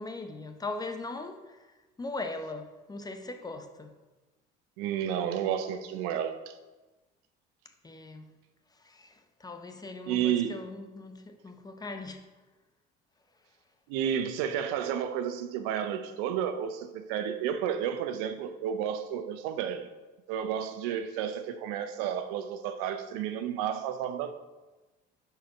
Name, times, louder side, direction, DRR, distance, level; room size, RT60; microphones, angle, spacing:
voice 1, 0.0-4.0 7.8-8.3 8.7-12.3, left 2 dB, 20° left, 0.8 m, -40 dB
voice 2, 4.8-6.5 10.1-10.6 13.9-19.9 20.3-24.3, right 9 dB, 85° right, 0.6 m, -31 dB
6.2 x 4.6 x 5.7 m
supercardioid pair, 90°, 21 cm